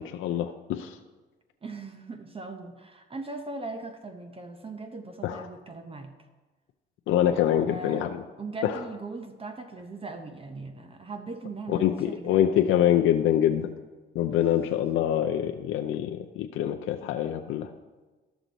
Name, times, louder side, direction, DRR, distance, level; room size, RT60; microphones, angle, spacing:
voice 1, 0.2-1.0 5.2-5.5 7.1-8.2 8.6-8.8 11.8-13.7 14.1-17.7, left 10 dB, 85° left, 4 dB, 0.5 m, -25 dB
voice 2, 1.6-6.1 7.6-8.1 8.4-12.4 14.3-14.5, right 3 dB, 30° right, 6 dB, 0.8 m, -39 dB
12.5 x 6.1 x 4.0 m, 1.2 s
cardioid pair, 90°, 20 cm